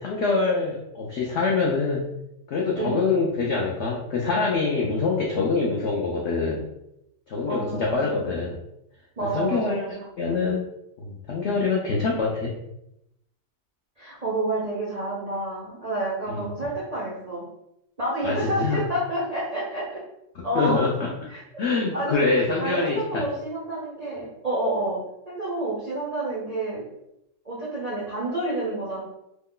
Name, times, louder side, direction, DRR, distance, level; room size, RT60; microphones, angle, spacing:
voice 1, 0.0-2.1 2.5-6.6 7.3-8.6 9.2-9.9 10.2-10.7 11.0-12.5 16.4-16.5 18.2-18.8 20.5-21.1 21.6-23.2, left 4 dB, 80° left, -2 dB, 0.6 m, -25 dB
voice 2, 2.7-3.1 7.4-8.2 9.2-10.0 14.0-17.4 18.0-20.0 20.4-20.8 21.3-21.4 21.9-22.3 22.6-26.8 27.4-29.0, right 1 dB, 75° right, -7 dB, 0.3 m, -29 dB
3.0 x 2.1 x 3.7 m, 0.83 s
omnidirectional pair, 1.8 m